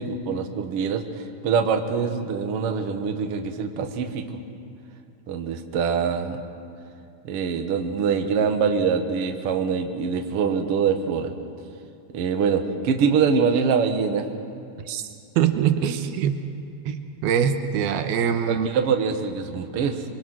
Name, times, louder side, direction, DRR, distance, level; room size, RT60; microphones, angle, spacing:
voice 1, 0.0-4.4 5.3-6.4 7.2-11.3 12.1-14.2 18.5-20.0, right 6 dB, 60° right, 5 dB, 1.6 m, -24 dB
voice 2, 14.8-15.1 15.4-16.4 16.8-18.7, right 8 dB, 80° right, 7 dB, 2.9 m, -23 dB
27.5 x 22.5 x 6.2 m, 2.5 s
omnidirectional pair, 4.5 m